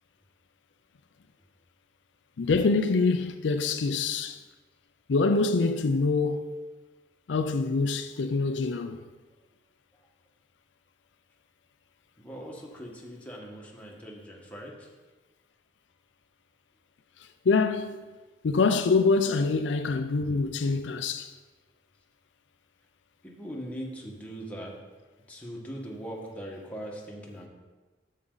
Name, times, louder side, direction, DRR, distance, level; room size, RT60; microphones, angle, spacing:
voice 1, 2.4-4.4 5.1-6.6 7.3-9.0 17.2-18.2 18.4-21.3, left 4 dB, 80° left, 0.5 m, -25 dB
voice 2, 12.2-14.9 23.2-24.8 25.3-27.5, equal, 10° left, 1.5 m, -40 dB
9.7 x 7.5 x 3.9 m
head